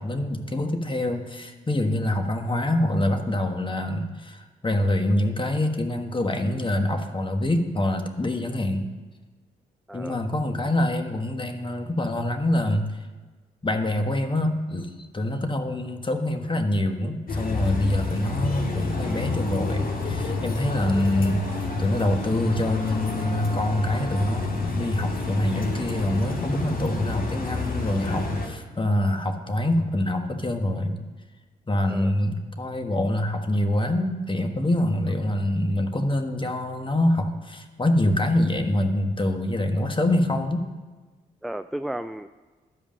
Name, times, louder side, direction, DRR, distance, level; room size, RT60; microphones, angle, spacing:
voice 1, 0.0-8.9 9.9-13.0 13.6-31.0 31.7-40.6, left 1 dB, 25° left, 6 dB, 1.4 m, -25 dB
voice 2, 9.9-10.3 20.8-21.0 31.9-32.1 41.4-42.3, right 1 dB, ahead, 11 dB, 0.3 m, -34 dB
sound 1, 17.3-28.5, left 3 dB, 45° left, 1.9 m, -29 dB
12.5 x 5.2 x 7.4 m, 1.3 s
hypercardioid pair, 45°, 20 cm